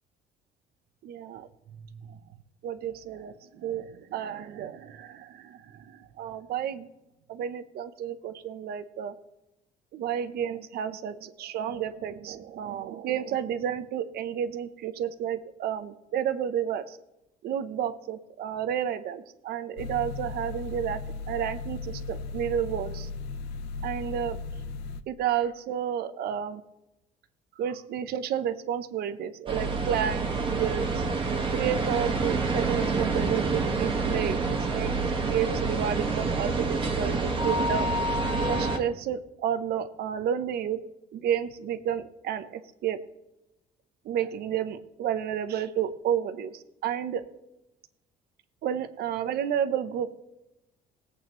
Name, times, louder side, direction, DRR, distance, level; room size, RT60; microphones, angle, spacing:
voice 1, 1.0-1.5 2.0-2.2 2.6-6.9 7.3-9.1 9.9-17.0 17.4-21.0 21.3-23.1 23.8-24.4 25.1-26.6 27.6-31.1 31.5-34.9 35.2-37.9 38.5-40.8 41.1-43.0 44.0-47.2 48.6-50.1, right 9 dB, 70° right, 11 dB, 0.8 m, -31 dB
sound 1, 19.8-25.0, left 4 dB, 90° left, 0.7 m, -36 dB
sound 2, 29.5-38.8, right 3 dB, 30° right, 1.7 m, -27 dB
20.5 x 8.1 x 3.1 m, 0.94 s
cardioid pair, 110°, 17 cm